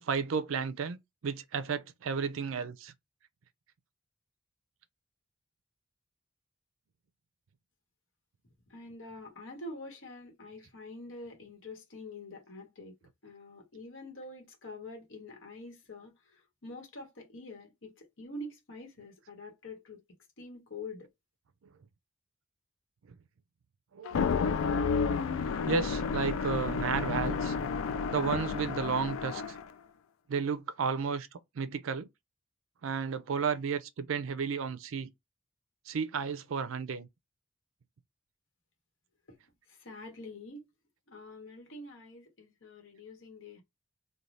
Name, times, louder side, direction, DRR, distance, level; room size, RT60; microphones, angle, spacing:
voice 1, 0.0-2.9 23.1-23.2 23.9-24.3 25.4-27.6 28.1-29.6 30.3-32.1 32.8-35.1 35.9-37.1, right 5 dB, 75° right, 0.4 m, -33 dB
voice 2, 8.7-12.9 13.2-20.0 20.4-21.1 39.7-40.6 41.1-43.6, left 2 dB, 65° left, 1.1 m, -46 dB
sound 1, 24.0-29.7, left 5 dB, 80° left, 0.4 m, -31 dB
2.6 x 2.2 x 3.1 m
head